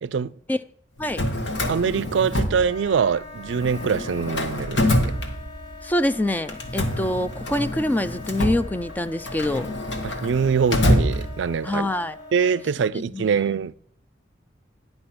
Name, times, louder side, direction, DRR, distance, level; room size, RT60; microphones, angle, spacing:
voice 1, 0.0-0.3 1.7-5.1 10.0-11.9 12.3-13.7, right 6 dB, 80° right, 0.4 m, -24 dB
Drawer open or close, 1.0-3.2 3.5-5.9 6.5-11.8, left 1 dB, 75° left, 1.5 m, -26 dB
Wind instrument woodwind instrument, 2.5-12.7, left 4 dB, 40° left, 4.4 m, -42 dB
voice 2, 5.8-9.7 11.6-12.2 12.9-13.4, left 1 dB, 10° left, 0.3 m, -25 dB
10.0 x 5.4 x 6.0 m
head